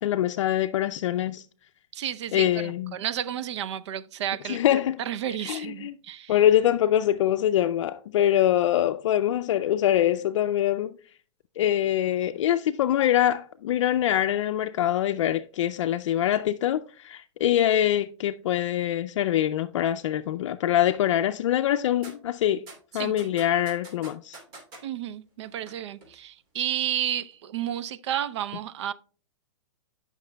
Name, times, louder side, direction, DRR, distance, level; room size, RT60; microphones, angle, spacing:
voice 1, 0.0-1.5 2.3-3.0 4.4-5.0 5.5-5.9 6.3-11.0 11.6-22.6 22.9-24.4, left 11 dB, 70° left, 0.4 m, -24 dB
voice 2, 1.9-6.4 22.9-23.1 24.8-28.9, right 11 dB, 65° right, 0.6 m, -32 dB
sound 1, 22.0-22.1 22.7-24.8 25.4-25.7 26.0-26.1, right 2 dB, 45° right, 2.9 m, -45 dB
15.0 x 5.8 x 2.2 m
hypercardioid pair, 150°, 16 cm